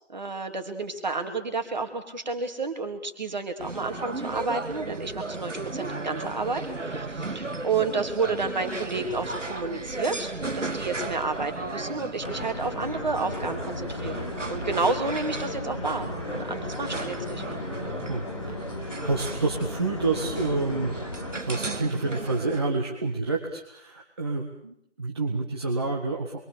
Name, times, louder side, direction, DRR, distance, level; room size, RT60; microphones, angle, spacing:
voice 1, 0.1-17.4, right 4 dB, 35° right, 6 dB, 3.6 m, -30 dB
sound 1, 3.6-22.6, right 2 dB, 90° right, 2.2 m, -35 dB
sound 2, 12.2-21.4, left 2 dB, 25° left, 1.1 m, -36 dB
voice 2, 18.1-21.0 21.4-26.4, right 3 dB, 20° right, 0 dB, 1.8 m, -29 dB
27.5 x 23.5 x 7.0 m, 0.70 s
figure-of-eight pair, 170°, 36 cm